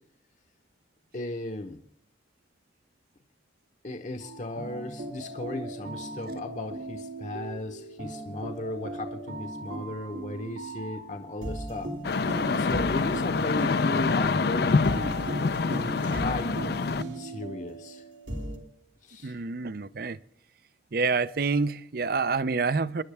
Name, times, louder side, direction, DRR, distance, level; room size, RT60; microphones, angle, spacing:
voice 1, 1.1-1.8 3.8-11.9 12.5-15.2 15.7-18.0 19.0-19.4, left 2 dB, 40° left, 0.9 m, -36 dB
sound 1, 4.2-18.6, right 1 dB, 85° right, 2.8 m, -38 dB
sound 2, 12.0-17.0, left 4 dB, 55° left, 0.5 m, -26 dB
voice 2, 19.2-20.2 20.9-23.0, right 4 dB, 55° right, 0.6 m, -27 dB
27.5 x 11.0 x 3.4 m
head